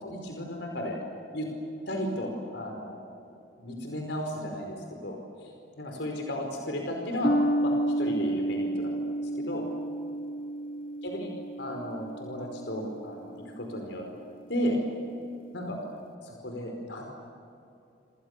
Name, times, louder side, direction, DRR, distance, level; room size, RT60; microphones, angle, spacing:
voice 1, 0.0-1.0 1.3-1.5 1.9-3.0 3.6-4.8 5.0-5.5 5.8-7.3 7.6-8.9 9.2-9.7 11.0-11.3 11.6-13.2 13.6-14.0 14.5-14.8 15.5-15.8 16.2-17.1, equal, 80° left, 2 dB, 4.9 m, -34 dB
sound 1, 7.2-14.0, right 1 dB, 50° left, 0.7 m, -31 dB
29.0 x 27.5 x 6.8 m, 2.6 s
head